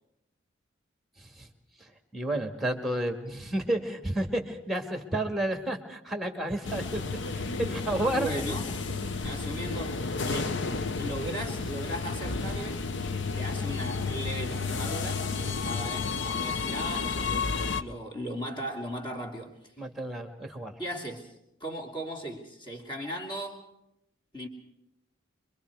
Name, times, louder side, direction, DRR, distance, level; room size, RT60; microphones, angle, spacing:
voice 1, 1.2-1.5 1.8-7.0 7.3-8.3 9.0-9.2 15.4-15.7 19.8-20.7, right 1 dB, ahead, 6 dB, 1.9 m, -31 dB
sound 1, 6.6-17.8, left 4 dB, 60° left, 0.8 m, -32 dB
voice 2, 8.0-8.8 9.2-10.6 10.8-12.8 13.3-17.5 17.8-19.7 20.8-23.6 24.3-24.5, equal, 25° left, 2 dB, 2.8 m, -37 dB
26.5 x 23.0 x 4.7 m, 0.83 s
head